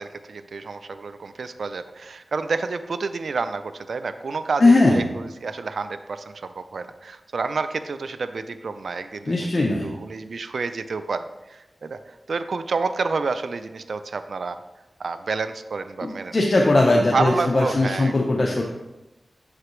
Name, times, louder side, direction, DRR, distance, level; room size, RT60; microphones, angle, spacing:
voice 1, 0.0-9.5 9.8-11.2 11.5-14.6 15.0-16.4 16.9-18.1, right 4 dB, 80° right, 11 dB, 0.3 m, -29 dB
voice 2, 4.6-5.0 9.3-9.9 16.0-18.6, left 2 dB, 50° left, 0 dB, 0.7 m, -19 dB
6.7 x 4.9 x 3.1 m, 1.0 s
cardioid pair, 55°, 0 cm